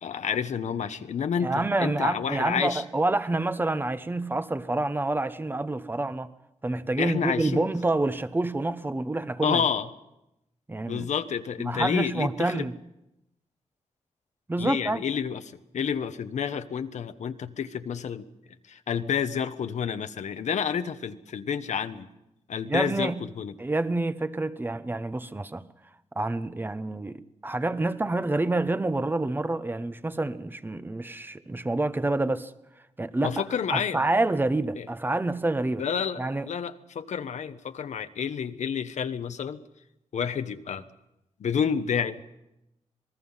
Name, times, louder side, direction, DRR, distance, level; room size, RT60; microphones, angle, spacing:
voice 1, 0.0-2.8 7.0-7.7 9.4-9.9 10.9-12.7 14.6-15.4 15.7-18.2 18.7-22.1 22.5-23.5 33.2-34.0 34.8-34.9 35.8-39.6 40.1-40.8 41.4-42.2, left 7 dB, 80° left, 1.1 m, -29 dB
voice 2, 1.4-6.3 6.6-9.6 10.7-11.1 11.7-12.7 14.5-15.0 22.7-23.2 23.6-25.6 26.2-32.5 33.0-33.4 33.7-35.8 36.2-36.5, right 2 dB, 15° right, 0.9 m, -27 dB
26.5 x 20.0 x 5.6 m
wide cardioid pair, 120°, 12 cm